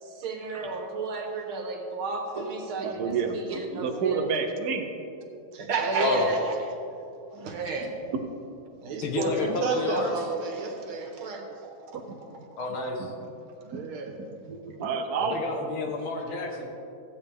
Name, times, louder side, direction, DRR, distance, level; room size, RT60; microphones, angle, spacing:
voice 1, 0.0-4.3 5.5-6.8 7.3-8.1 8.8-12.0 13.6-14.2, right 4 dB, 85° right, 2 dB, 2.0 m, -32 dB
voice 2, 2.8-4.9 11.9-12.2 13.0-13.1 13.7-13.9 14.2-15.4, right 5 dB, 60° right, 3 dB, 1.1 m, -30 dB
voice 3, 9.0-10.1 12.6-13.1 15.2-16.7, left 3 dB, 85° left, 2 dB, 2.0 m, -29 dB
14.5 x 8.7 x 3.5 m, 2.8 s
omnidirectional pair, 2.2 m